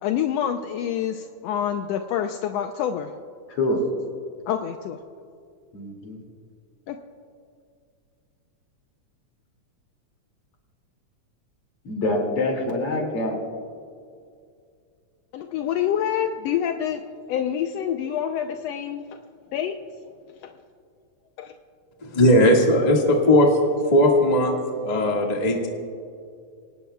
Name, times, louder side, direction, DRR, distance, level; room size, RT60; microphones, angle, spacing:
voice 1, 0.0-3.1 4.5-5.0 6.9-7.0 15.3-17.0 17.3-19.2 19.5-19.8 20.4-20.5 21.4-21.5, left 9 dB, 80° left, 5 dB, 1.6 m, -27 dB
voice 2, 3.5-3.8 5.7-6.2 11.8-13.4, left 1 dB, 50° left, 1 dB, 3.3 m, -25 dB
voice 3, 22.0-23.6 23.8-25.7, left 1 dB, 20° left, 0 dB, 1.2 m, -18 dB
26.0 x 18.5 x 2.3 m, 2.3 s
omnidirectional pair, 3.4 m